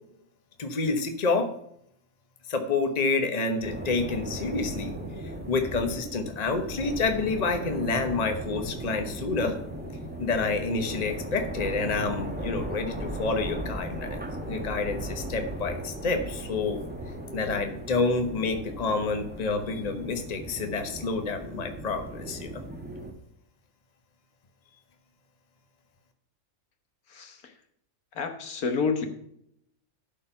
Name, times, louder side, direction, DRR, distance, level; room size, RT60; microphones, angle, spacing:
voice 1, 0.6-1.5 2.5-4.9 5.2-9.6 10.2-16.8 17.3-22.6, left 4 dB, 30° left, 6 dB, 1.0 m, -28 dB
sound 1, 3.6-23.1, right 1 dB, 10° right, 0.9 m, -37 dB
voice 2, 27.1-27.6 28.1-29.1, left 5 dB, 85° left, 5 dB, 1.7 m, -29 dB
12.0 x 4.3 x 5.6 m, 0.72 s
omnidirectional pair, 1.5 m